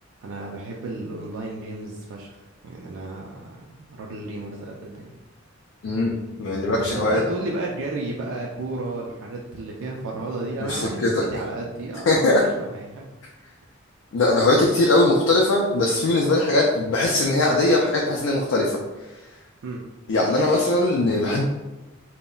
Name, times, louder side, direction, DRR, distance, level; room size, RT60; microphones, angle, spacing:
voice 1, 0.2-5.2 6.8-13.0 19.6-19.8, right 2 dB, 85° right, -2 dB, 0.4 m, -33 dB
voice 2, 6.4-7.2 10.6-11.2 12.1-12.4 14.1-18.8 20.1-21.4, left 2 dB, 80° left, -1 dB, 0.4 m, -20 dB
2.1 x 2.0 x 3.7 m, 1.1 s
head